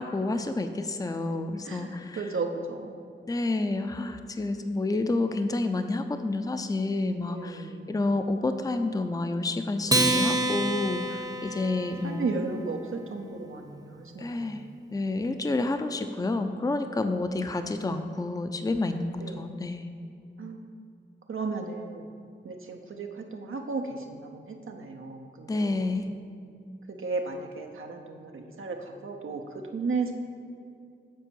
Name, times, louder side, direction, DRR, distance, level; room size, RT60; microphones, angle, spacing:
voice 1, 0.0-2.2 3.3-12.3 14.2-14.6 14.9-19.9 25.5-26.1, left 2 dB, 20° left, 8 dB, 0.5 m, -29 dB
voice 2, 1.6-3.1 7.3-7.9 11.7-14.7 17.4-18.0 19.2-19.6 20.4-20.6 21.3-22.1 22.4-25.9 26.9-30.1, right 4 dB, 90° right, 3 dB, 0.7 m, -35 dB
Acoustic guitar, 9.9-12.5, right 1 dB, 20° right, 0.7 m, -27 dB
7.5 x 4.4 x 6.9 m, 2.4 s
wide cardioid pair, 65°, 20 cm